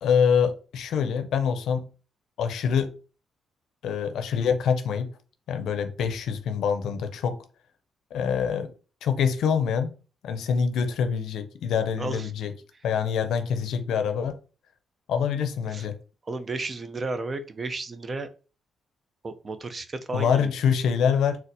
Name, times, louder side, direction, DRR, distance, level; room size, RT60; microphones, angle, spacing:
voice 1, 0.0-1.8 2.4-2.9 3.8-5.1 5.5-7.4 8.1-8.7 9.0-9.9 10.2-12.5 12.8-14.4 15.1-15.9 20.1-21.4, left 7 dB, 75° left, 0.5 m, -25 dB
voice 2, 12.0-12.3 15.7-15.9 16.3-18.3 19.2-20.5, right 3 dB, 40° right, 0.5 m, -33 dB
4.0 x 2.1 x 2.6 m
supercardioid pair, 65°, 0 cm